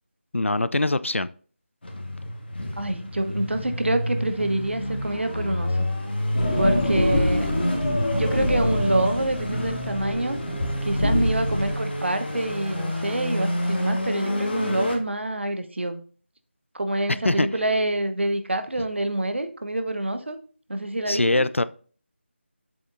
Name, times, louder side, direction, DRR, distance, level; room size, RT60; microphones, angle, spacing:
voice 1, 0.3-1.3 17.2-17.5 21.1-21.6, left 2 dB, 85° left, 0.5 m, -22 dB
sound 1, 1.8-15.0, left 1 dB, 55° left, 2.0 m, -29 dB
voice 2, 2.8-5.9 6.6-7.5 8.1-10.4 10.8-16.0 16.7-20.4 20.7-21.4, right 1 dB, 65° right, 1.1 m, -26 dB
sound 2, 6.3-11.8, left 1 dB, 35° left, 2.2 m, -25 dB
9.7 x 7.7 x 2.6 m
figure-of-eight pair, 165°, 7 cm